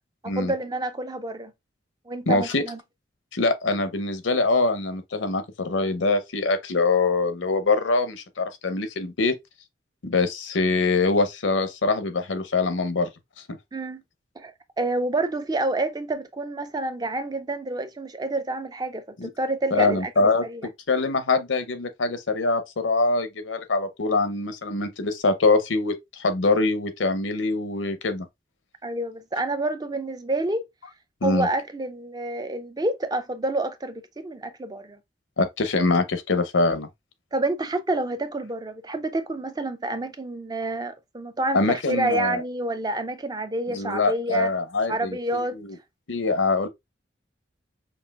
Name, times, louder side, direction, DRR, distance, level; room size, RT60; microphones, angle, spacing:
voice 1, 0.2-1.5 2.1-2.8 13.7-14.0 14.4-20.6 28.8-30.6 31.2-35.0 37.3-44.5 44.9-45.6, right 2 dB, 20° right, 0.4 m, -28 dB
voice 2, 2.3-2.6 3.3-9.3 10.0-13.1 19.2-19.3 19.7-20.5 20.9-28.3 31.2-31.5 35.4-36.9 41.5-42.4 43.7-45.8 46.1-46.7, left 3 dB, 90° left, 0.8 m, -24 dB
5.4 x 2.5 x 2.3 m
head